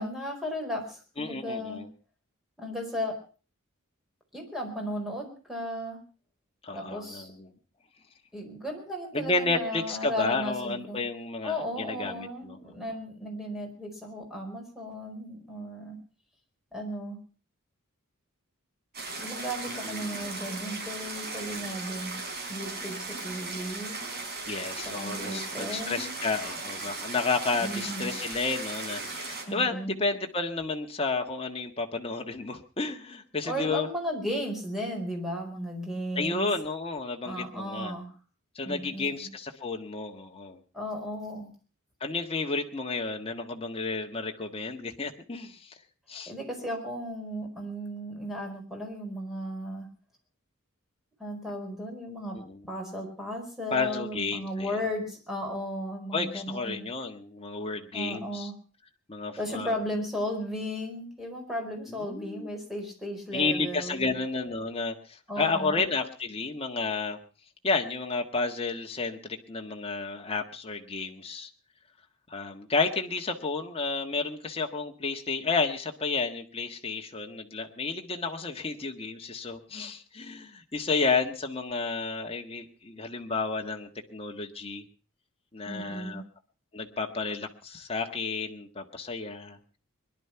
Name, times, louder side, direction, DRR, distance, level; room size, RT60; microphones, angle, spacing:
voice 1, 0.0-1.8 2.6-3.2 4.3-6.0 6.7-7.3 8.3-11.0 11.4-16.0 16.7-17.2 19.1-22.1 22.5-24.0 24.8-26.1 27.6-28.1 29.4-30.0 33.5-36.5 37.2-38.1 38.6-39.3 40.7-41.5 46.3-49.9 51.2-52.4 52.7-56.8 57.9-58.5 59.3-64.2 65.3-65.9 85.7-86.2, equal, ahead, 1 dB, 4.7 m, -35 dB
voice 2, 1.2-1.9 6.6-7.6 9.1-12.7 19.7-20.3 24.5-33.9 36.1-37.9 38.5-40.6 42.0-45.8 46.1-46.3 52.3-52.7 53.7-54.8 56.1-58.5 59.1-59.8 61.9-62.5 63.3-67.2 67.6-71.5 72.3-84.8 85.5-86.2 86.7-89.8, left 3 dB, 25° left, 3 dB, 1.6 m, -31 dB
sound 1, 18.9-29.4, right 3 dB, 45° right, 4.4 m, -37 dB
21.5 x 11.5 x 5.8 m, 0.39 s
head